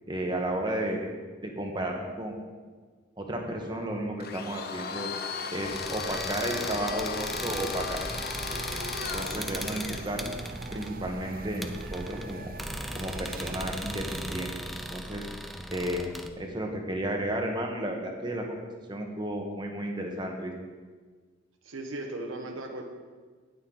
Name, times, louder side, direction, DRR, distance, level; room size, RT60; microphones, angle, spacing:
voice 1, 0.1-1.1 1.4-2.4 3.2-5.1 5.5-8.2 8.7-8.8 9.1-10.3 10.7-12.5 12.9-14.5 14.9-15.3 15.7-16.1 16.4-18.4 18.9-20.5, right 1 dB, 25° right, 1 dB, 1.4 m, -33 dB
Domestic sounds home sounds, 4.2-10.1, left 6 dB, 50° left, 0.7 m, -36 dB
sound 1, 5.6-16.3, equal, ahead, 0.5 m, -38 dB
sound 2, 7.5-14.4, right 3 dB, 45° right, 0.5 m, -43 dB
voice 2, 21.6-22.8, right 2 dB, 85° right, 3 dB, 1.5 m, -37 dB
18.0 x 6.7 x 4.0 m, 1.5 s
head